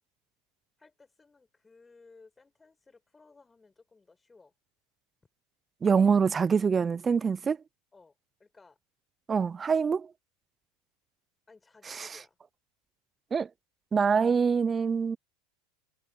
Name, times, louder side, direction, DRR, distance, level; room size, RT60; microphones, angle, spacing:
voice 1, 0.8-4.5 7.9-8.8 11.5-12.4, left 4 dB, 15° left, 7.8 m, -58 dB
voice 2, 5.8-7.6 9.3-10.1 13.3-13.5 13.9-15.2, right 6 dB, 20° right, 0.3 m, -24 dB
supercardioid pair, 110°, 0 cm